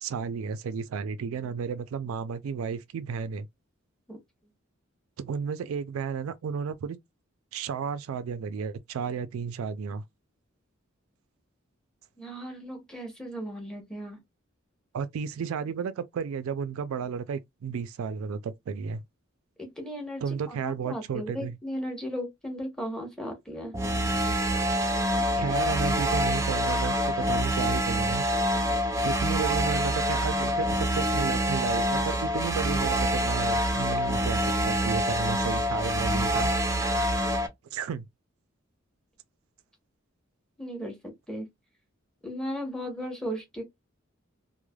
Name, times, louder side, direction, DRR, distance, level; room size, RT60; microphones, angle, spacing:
voice 1, 0.0-3.5 5.2-7.0 7.5-10.0 14.9-19.0 20.2-21.6 25.4-28.2 29.0-36.5 37.7-38.1, right 6 dB, 90° right, 0.3 m, -33 dB
voice 2, 12.2-14.2 19.6-23.7 40.6-41.0 41.3-41.5 42.2-43.6, equal, 5° left, 0.9 m, -36 dB
sound 1, 23.7-37.5, equal, 15° right, 0.4 m, -26 dB
3.1 x 2.1 x 2.2 m
head